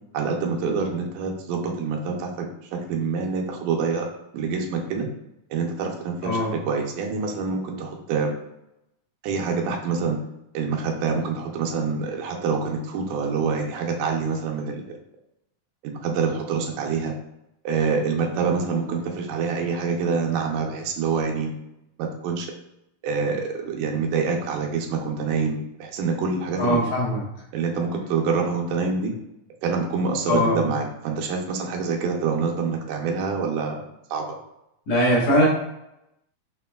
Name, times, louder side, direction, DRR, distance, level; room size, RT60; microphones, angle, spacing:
voice 1, 0.1-4.1 4.3-5.1 5.5-8.3 9.2-10.2 10.5-14.8 15.8-17.1 17.6-21.5 22.0-22.5 23.0-26.8 27.5-29.1 29.6-33.8 34.1-34.4, right 5 dB, 85° right, 1 dB, 2.2 m, -26 dB
voice 2, 6.2-6.6 26.6-27.2 30.3-30.7 34.9-35.5, equal, 65° left, -6 dB, 2.3 m, -21 dB
5.8 x 3.0 x 2.2 m, 0.87 s
omnidirectional pair, 3.6 m